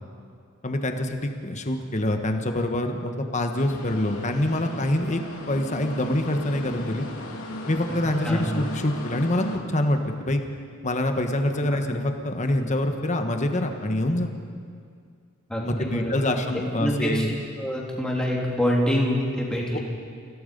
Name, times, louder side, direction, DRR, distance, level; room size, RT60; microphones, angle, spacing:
voice 1, 0.6-5.2 5.5-7.0 7.7-10.4 10.8-14.3 15.6-17.3 19.7-19.8, left 1 dB, 35° left, 5 dB, 1.4 m, -25 dB
sound 1, 3.5-9.6, left 1 dB, 75° left, 2.7 m, -37 dB
voice 2, 15.5-16.2 16.8-17.2 17.6-19.8, equal, 5° left, -3 dB, 3.2 m, -25 dB
29.5 x 17.0 x 5.4 m, 2.2 s
head